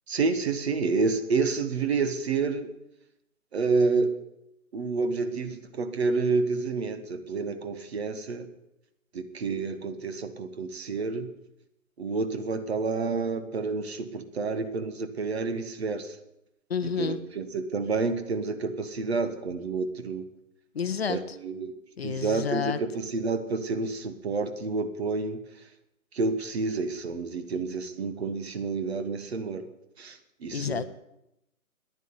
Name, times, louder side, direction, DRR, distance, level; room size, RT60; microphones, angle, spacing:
voice 1, 0.1-2.7 3.5-4.2 4.7-8.5 9.1-11.3 12.0-16.2 16.8-20.3 21.1-21.8 22.0-25.4 26.1-29.7 30.0-30.8, right 4 dB, 45° right, 9 dB, 1.5 m, -29 dB
voice 2, 16.7-17.2 20.7-21.4 22.0-22.8 30.5-30.8, left 7 dB, 45° left, 12 dB, 0.8 m, -30 dB
10.0 x 9.6 x 9.7 m, 0.86 s
figure-of-eight pair, 140°, 43 cm